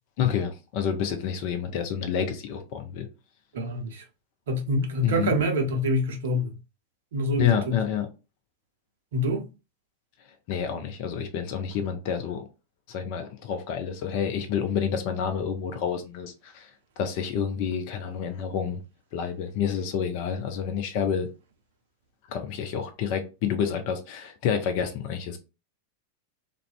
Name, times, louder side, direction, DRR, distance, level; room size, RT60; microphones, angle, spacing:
voice 1, 0.2-3.1 5.0-5.4 7.4-8.1 10.5-12.4 12.9-16.7 17.0-18.8 19.1-21.3 22.3-25.4, left 8 dB, 45° left, 0.5 m, -28 dB
voice 2, 3.5-4.0 4.5-6.5 7.1-7.8 9.1-9.5, equal, 60° right, 0.6 m, -26 dB
2.5 x 2.1 x 2.4 m
figure-of-eight pair, 90°, 0 cm